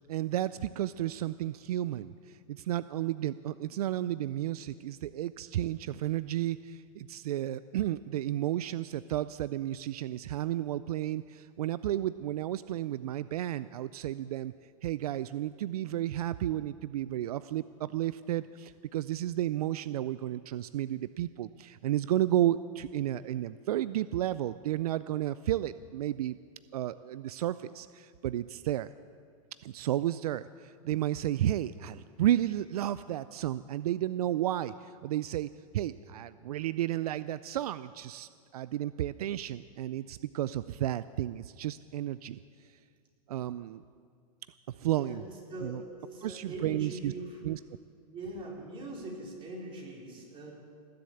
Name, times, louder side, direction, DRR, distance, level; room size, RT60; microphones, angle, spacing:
voice 1, 0.1-14.5 14.8-26.4 26.7-28.9 29.6-42.4 43.3-43.8 44.7-45.2 45.6-45.8 46.2-47.1 47.4-47.6, right 13 dB, 80° right, 16 dB, 0.4 m, -32 dB
voice 2, 44.8-45.2 45.5-47.4 48.1-50.5, right 1 dB, 30° right, -2 dB, 4.5 m, -42 dB
18.5 x 7.7 x 8.5 m, 2.2 s
hypercardioid pair, 130°, 19 cm